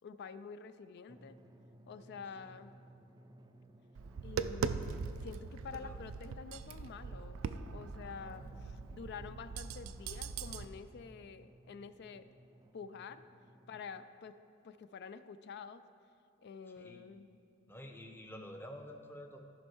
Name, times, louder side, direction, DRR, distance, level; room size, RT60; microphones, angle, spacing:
voice 1, 0.0-1.4 1.9-2.7 4.2-7.4 7.7-12.3 12.7-13.2 13.7-14.4 14.6-15.8 16.4-17.3, left 5 dB, 55° left, 12 dB, 0.4 m, -48 dB
Drum, 1.1-14.1, right 1 dB, 20° right, 0.4 m, -60 dB
Tap, 4.0-10.6, right 5 dB, 85° right, 0.4 m, -41 dB
voice 2, 8.1-8.6 16.8-17.0 17.7-19.4, equal, 10° left, 3 dB, 0.7 m, -50 dB
14.5 x 5.4 x 4.5 m, 2.4 s
head